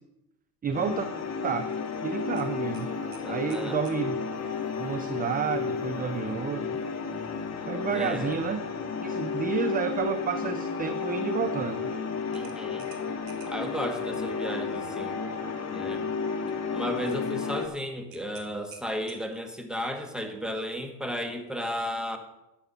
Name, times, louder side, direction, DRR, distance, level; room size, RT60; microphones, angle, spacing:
voice 1, 0.6-1.1 1.4-1.7 2.0-2.9 3.3-4.2 4.8-6.8 7.7-8.7 9.0-11.9, right 7 dB, 20° right, 10 dB, 0.5 m, -30 dB
sound 1, 0.7-17.7, left 5 dB, 30° left, 1.7 m, -32 dB
sound 2, 2.4-4.0 6.6-6.9 7.3-7.4 12.3-13.7 18.1-19.5, right 7 dB, 45° right, 1.8 m, -52 dB
voice 2, 3.2-3.8 7.9-8.4 12.3-12.9 13.5-15.2 15.7-16.1 16.7-22.2, equal, ahead, 5 dB, 1.6 m, -34 dB
11.0 x 7.2 x 5.6 m, 0.91 s
hypercardioid pair, 85°, 49 cm